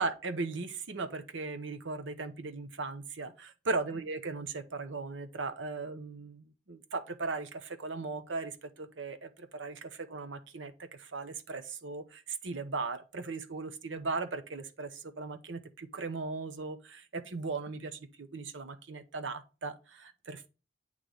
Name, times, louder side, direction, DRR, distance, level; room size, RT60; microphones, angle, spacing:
voice 1, 0.0-20.5, right 3 dB, 65° right, 0.8 m, -38 dB
8.4 x 3.2 x 3.9 m
head